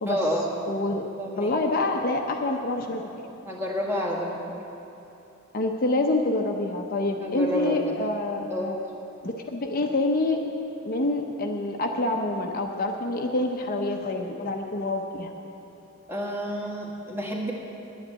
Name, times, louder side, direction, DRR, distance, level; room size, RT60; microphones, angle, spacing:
voice 1, 0.1-0.4 1.2-1.5 3.4-4.4 7.2-8.0 8.5-8.7 16.1-17.5, equal, 10° right, -3 dB, 1.6 m, -29 dB
voice 2, 0.7-1.0 1.4-3.0 5.5-8.8 9.2-10.4 10.8-15.3, left 2 dB, 40° left, 2 dB, 0.7 m, -27 dB
10.5 x 9.0 x 8.8 m, 2.9 s
head